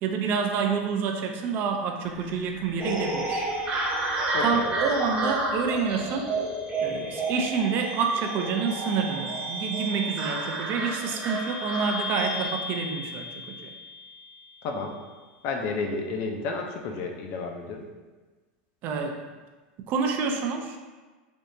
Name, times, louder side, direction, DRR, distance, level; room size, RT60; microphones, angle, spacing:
voice 1, 0.0-3.5 4.4-6.3 6.8-13.7 18.8-19.2 19.9-20.8, right 5 dB, 45° right, 4 dB, 0.4 m, -28 dB
sound 1, 2.1-15.1, left 1 dB, ahead, 0.6 m, -39 dB
sound 2, 2.8-12.5, right 2 dB, 25° right, 1.1 m, -31 dB
voice 2, 4.3-4.7 14.6-15.0 15.4-17.9, left 4 dB, 50° left, 3 dB, 0.5 m, -31 dB
3.4 x 2.7 x 2.6 m, 1.3 s
supercardioid pair, 125°, 5 cm